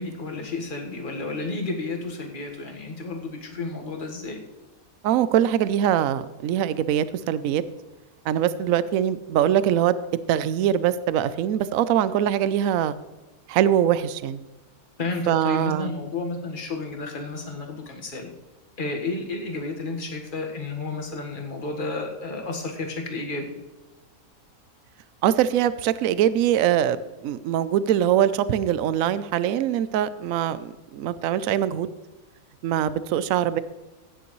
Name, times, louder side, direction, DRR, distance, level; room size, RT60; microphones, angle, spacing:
voice 1, 0.0-4.4 15.0-18.3 18.8-23.5, left 3 dB, 35° left, 2 dB, 1.7 m, -32 dB
voice 2, 5.0-7.6 8.2-9.9 10.3-13.0 13.5-14.4 15.3-15.9 25.2-31.9 32.6-33.6, right 10 dB, 70° right, 15 dB, 0.9 m, -23 dB
16.0 x 9.5 x 3.1 m, 1.1 s
omnidirectional pair, 1.6 m